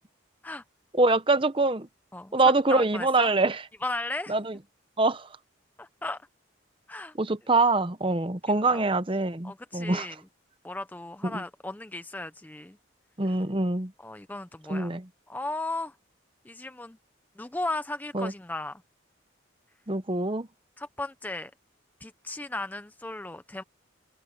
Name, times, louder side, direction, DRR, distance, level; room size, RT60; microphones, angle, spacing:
voice 1, 0.9-1.9 2.3-3.6 4.3-4.6 5.0-5.3 7.2-10.1 11.2-11.4 13.2-13.9 14.7-15.1 18.1-18.3 19.9-20.5, right 2 dB, 25° right, 0.8 m, -24 dB
voice 2, 2.7-3.3 3.8-4.3 5.8-6.2 6.9-7.1 8.7-8.8 9.4-10.2 10.6-12.8 14.0-15.0 15.3-15.9 16.5-17.0 17.4-18.8 20.8-21.5 22.0-23.6, left 2 dB, 10° left, 0.4 m, -36 dB
head